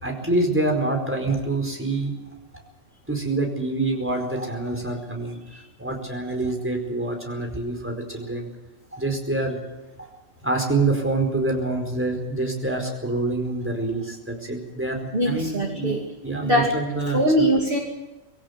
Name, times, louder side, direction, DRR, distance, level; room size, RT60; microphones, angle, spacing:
voice 1, 0.0-2.1 3.1-5.4 5.8-8.5 8.9-9.6 10.0-10.1 10.4-15.9 16.2-17.5, right 2 dB, 10° right, 2 dB, 4.7 m, -26 dB
voice 2, 15.1-16.0 16.4-16.7 17.1-17.8, equal, 45° right, 1 dB, 2.8 m, -21 dB
22.0 x 17.0 x 8.3 m, 1.1 s
omnidirectional pair, 1.3 m